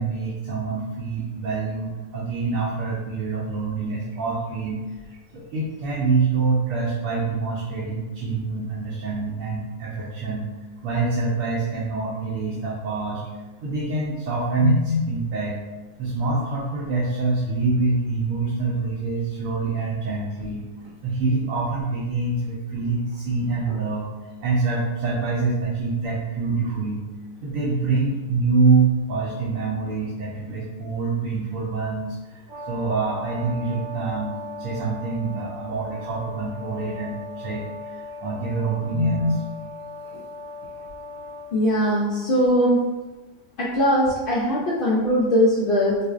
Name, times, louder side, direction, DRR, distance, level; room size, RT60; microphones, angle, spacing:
voice 1, 0.0-10.5 10.8-13.2 13.6-15.6 16.0-20.6 21.0-24.1 24.4-27.0 27.4-39.4 40.0-40.2, right 3 dB, 70° right, -5 dB, 1.0 m, -25 dB
Brass instrument, 32.5-41.5, left 2 dB, 40° right, 0.9 m, -38 dB
voice 2, 41.5-42.8 43.6-46.0, equal, 65° left, -6 dB, 0.5 m, -20 dB
4.1 x 2.5 x 2.4 m, 1.2 s
omnidirectional pair, 1.5 m